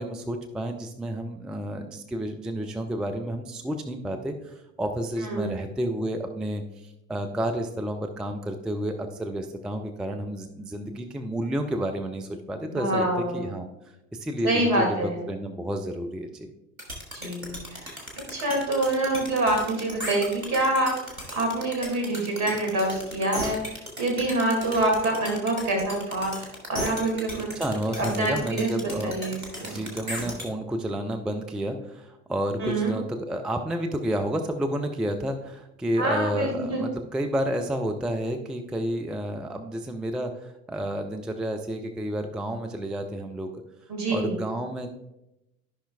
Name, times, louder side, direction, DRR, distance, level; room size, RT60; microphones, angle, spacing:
voice 1, 0.0-13.1 13.3-16.5 27.5-43.5 44.1-44.9, right 1 dB, ahead, 5 dB, 0.4 m, -30 dB
voice 2, 5.2-5.5 12.7-13.5 14.4-15.2 17.1-18.0 18.3-27.5 28.0-29.8 30.1-30.3 32.6-32.9 36.0-36.8 43.9-44.4, right 1 dB, 40° right, 1 dB, 2.2 m, -26 dB
sound 1, 16.8-30.5, equal, 90° right, 1.6 m, -36 dB
13.5 x 5.6 x 2.3 m, 0.91 s
figure-of-eight pair, 70°, 41 cm